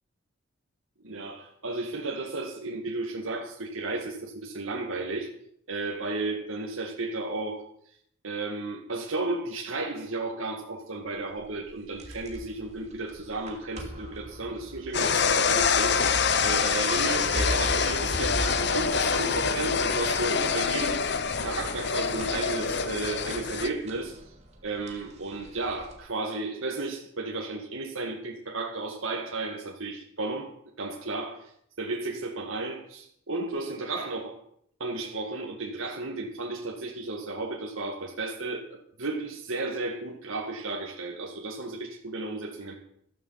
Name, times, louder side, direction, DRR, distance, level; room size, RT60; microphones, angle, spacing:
voice 1, 1.0-5.3 5.7-7.6 8.2-16.0 16.4-21.0 21.4-24.2 24.6-31.5 31.8-34.4 34.8-42.8, right 2 dB, 85° right, 0 dB, 2.0 m, -33 dB
sound 1, 11.1-25.9, equal, 30° right, 2.7 m, -40 dB
sound 2, 14.9-23.7, left 6 dB, 55° left, 0.9 m, -26 dB
14.5 x 13.5 x 5.8 m, 0.68 s
head